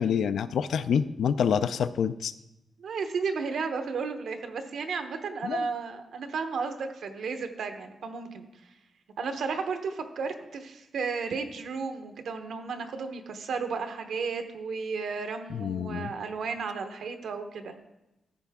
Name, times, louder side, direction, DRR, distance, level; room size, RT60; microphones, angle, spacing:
voice 1, 0.0-2.3 5.4-5.7 15.5-16.1, left 7 dB, 85° left, 12 dB, 0.3 m, -27 dB
voice 2, 2.8-8.5 9.2-17.7, right 5 dB, 80° right, 6 dB, 0.9 m, -33 dB
14.0 x 5.7 x 3.5 m, 0.94 s
wide cardioid pair, 150°, 0 cm